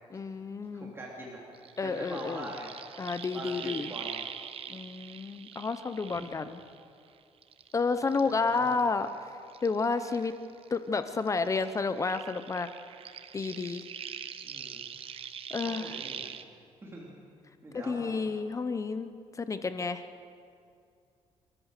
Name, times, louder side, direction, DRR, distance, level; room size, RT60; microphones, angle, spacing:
voice 1, 0.1-0.9 1.8-2.5 3.0-3.9 4.7-6.6 7.7-9.1 9.6-10.3 10.7-12.7 13.3-13.8 15.5-15.9 17.7-19.1 19.4-20.0, left 4 dB, 30° left, 11 dB, 0.8 m, -31 dB
voice 2, 0.7-2.8 3.3-4.2 6.1-6.5 8.2-8.8 14.4-14.9 15.6-16.3 16.8-17.1 17.6-18.2, right 1 dB, 20° right, -4 dB, 3.3 m, -43 dB
sound 1, 1.5-7.1 7.4-10.8 11.0-16.4, right 8 dB, 55° right, 1.0 m, -43 dB
29.0 x 14.0 x 6.7 m, 2.4 s
cardioid pair, 120°, 11 cm